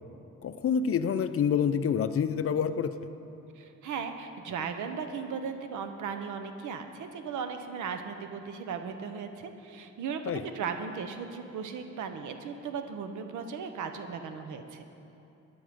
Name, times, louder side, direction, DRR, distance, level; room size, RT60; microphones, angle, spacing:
voice 1, 0.4-2.9 10.3-10.4, left 7 dB, 50° left, 11 dB, 0.6 m, -27 dB
voice 2, 3.5-14.8, right 6 dB, 80° right, 7 dB, 1.1 m, -37 dB
15.0 x 9.9 x 5.3 m, 2.9 s
cardioid pair, 90°, 30 cm